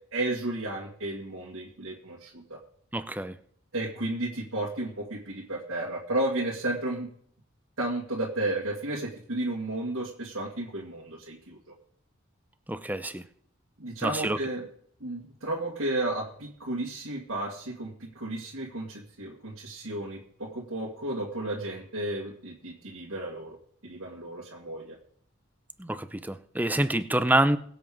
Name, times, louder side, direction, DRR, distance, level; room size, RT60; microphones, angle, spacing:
voice 1, 0.1-2.6 3.7-7.1 7.8-11.6 13.8-14.7 15.0-23.6 23.8-25.0, right 1 dB, 70° right, -4 dB, 1.9 m, -33 dB
voice 2, 2.9-3.3 12.7-13.2 14.0-14.4 25.8-27.6, right 1 dB, 10° right, 12 dB, 0.5 m, -26 dB
22.0 x 7.7 x 3.7 m, 0.63 s
head